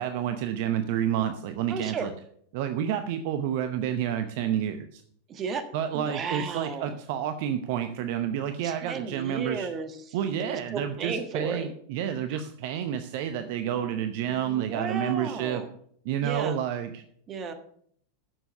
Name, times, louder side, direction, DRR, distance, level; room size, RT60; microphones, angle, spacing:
voice 1, 0.0-2.1 2.5-5.0 5.7-9.7 10.1-15.6 16.0-17.0, right 9 dB, 55° right, 9 dB, 0.7 m, -29 dB
voice 2, 1.7-2.1 5.3-5.7 5.9-6.9 8.6-11.7 12.3-12.4 14.3-15.7 16.2-16.6 17.3-17.5, right 5 dB, 30° right, 8 dB, 1.5 m, -34 dB
9.8 x 7.0 x 6.5 m, 0.64 s
figure-of-eight pair, 90°, 0 cm